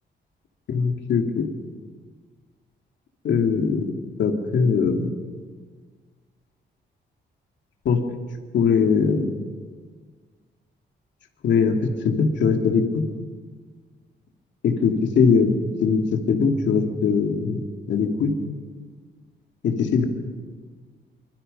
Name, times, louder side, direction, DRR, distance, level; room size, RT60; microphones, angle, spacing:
voice 1, 0.7-1.5 3.2-3.9 4.2-5.1 7.8-8.0 8.5-9.3 11.4-11.8 12.0-13.0 14.6-15.5 15.8-17.6 17.9-18.3 19.6-20.1, left 5 dB, 75° left, 3 dB, 2.7 m, -21 dB
26.5 x 24.5 x 5.6 m, 1.5 s
wide cardioid pair, 155°, 19 cm